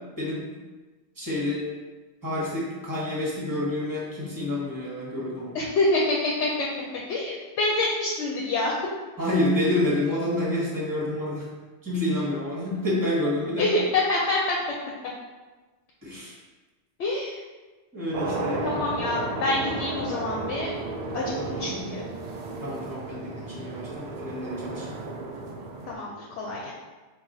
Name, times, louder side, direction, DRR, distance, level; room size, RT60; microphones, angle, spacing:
voice 1, 0.2-0.5 1.2-1.6 2.2-5.6 9.2-11.5 11.8-13.7 16.0-16.3 17.9-18.8 21.4-21.8 22.6-25.0, left 1 dB, 15° right, -5 dB, 1.1 m, -28 dB
voice 2, 5.5-6.7 7.1-8.7 13.6-14.6 17.0-17.4 18.6-20.7 21.1-22.0 25.9-26.7, left 2 dB, 70° left, -3 dB, 0.9 m, -26 dB
sound 1, 18.1-25.9, right 3 dB, 80° right, 0.3 m, -33 dB
4.7 x 2.3 x 3.8 m, 1.3 s
omnidirectional pair, 1.2 m